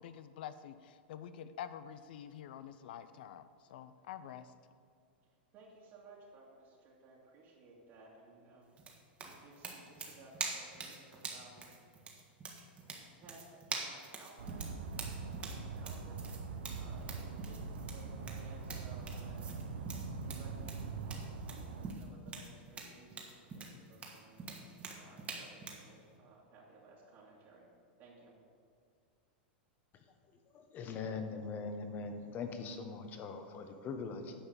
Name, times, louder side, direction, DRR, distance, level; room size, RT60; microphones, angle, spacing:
voice 1, 0.0-4.5, left 9 dB, 70° left, 12 dB, 0.5 m, -47 dB
voice 2, 5.5-8.7 9.2-11.7 13.1-14.7 15.3-16.1 16.8-19.7 20.2-24.4 24.9-27.7 28.0-28.3, right 3 dB, 45° right, -5 dB, 2.0 m, -58 dB
sound 1, 8.8-25.9, right 4 dB, 25° right, 1.4 m, -45 dB
sound 2, 14.4-21.9, right 4 dB, 85° right, 0.9 m, -43 dB
voice 3, 30.5-34.3, left 4 dB, 35° left, 7 dB, 1.1 m, -41 dB
9.7 x 5.6 x 6.8 m, 2.3 s
hypercardioid pair, 130°, 5 cm